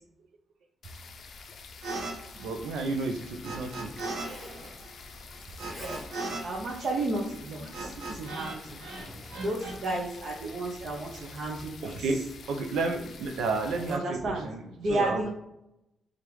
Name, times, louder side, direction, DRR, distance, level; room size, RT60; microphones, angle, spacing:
sound 1, 0.8-14.0, left 4 dB, 50° left, 0.5 m, -47 dB
sound 2, 1.8-2.1 2.4-4.3 4.5-8.6 8.8-10.0, right 2 dB, 65° right, 1.1 m, -38 dB
voice 1, 2.3-3.9 7.8-7.9 10.4-10.5 11.8-14.6 14.9-15.2, right 3 dB, 90° right, 5 dB, 0.6 m, -31 dB
Zipper (clothing), 3.3-11.5, equal, 5° left, 0.9 m, -51 dB
voice 2, 5.7-6.0 6.4-8.8 9.4-12.1 13.8-14.5 14.8-15.3, right 2 dB, 50° right, -2 dB, 0.7 m, -33 dB
3.3 x 2.5 x 4.4 m, 0.86 s
cardioid pair, 140°, 0 cm